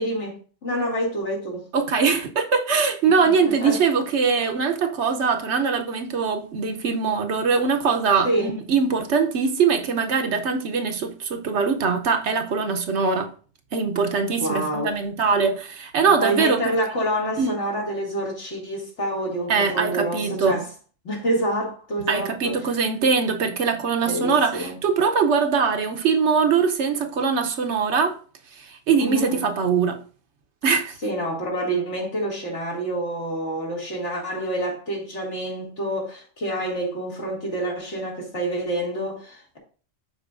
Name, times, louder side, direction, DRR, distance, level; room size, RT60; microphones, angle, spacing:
voice 1, 0.0-1.6 3.2-3.8 8.2-8.5 14.4-14.9 16.1-20.6 21.0-22.8 24.0-24.8 29.0-29.4 31.0-39.6, right 1 dB, 70° left, 2.7 m, -27 dB
voice 2, 1.7-13.3 13.7-16.8 17.4-17.6 19.5-20.6 22.1-28.2 28.6-30.0 30.6-30.9, right 5 dB, 70° right, 1.1 m, -22 dB
12.0 x 4.3 x 2.5 m
omnidirectional pair, 1.2 m